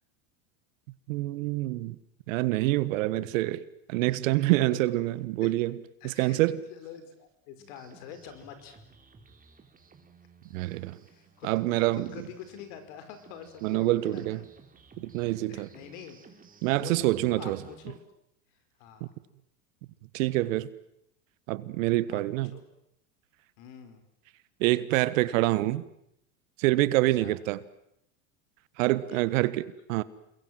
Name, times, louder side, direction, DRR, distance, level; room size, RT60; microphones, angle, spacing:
voice 1, 1.1-2.0 2.3-3.6 3.9-5.8 6.0-6.6 10.5-11.0 11.4-12.1 13.6-14.4 15.0-15.7 16.6-17.6 19.0-19.1 20.1-20.7 21.5-22.6 24.6-25.8 26.6-27.6 28.8-30.0, right 17 dB, 70° right, 1.5 m, -26 dB
voice 2, 4.6-5.1 5.4-5.5 6.0-6.4 6.7-8.8 11.0-11.5 11.9-14.5 15.5-18.1 18.8-19.1 22.1-22.2 22.5-22.6 23.6-24.1 27.2-27.4 29.1-29.5, left 8 dB, 65° left, 5.1 m, -46 dB
sound 1, 7.6-18.0, right 5 dB, 20° right, 3.5 m, -55 dB
29.0 x 22.0 x 7.7 m
hypercardioid pair, 105°, 40 cm